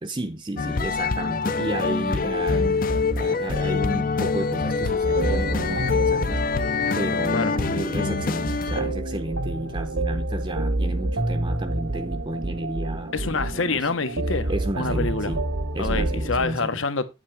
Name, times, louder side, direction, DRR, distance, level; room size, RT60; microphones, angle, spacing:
voice 1, 0.0-13.9 14.5-15.4 15.7-16.8, right 1 dB, 25° right, 0.7 m, -32 dB
sound 1, 0.6-8.9, left 4 dB, 40° left, 0.6 m, -25 dB
sound 2, 2.5-4.3 4.6-11.2 11.5-14.1 14.5-16.1, right 1 dB, 60° right, 0.8 m, -31 dB
sound 3, 5.1-16.5, right 1 dB, 75° right, 1.4 m, -30 dB
voice 2, 13.1-14.5 14.8-15.3 15.8-17.0, left 4 dB, 70° left, 1.2 m, -26 dB
8.9 x 8.3 x 3.4 m
head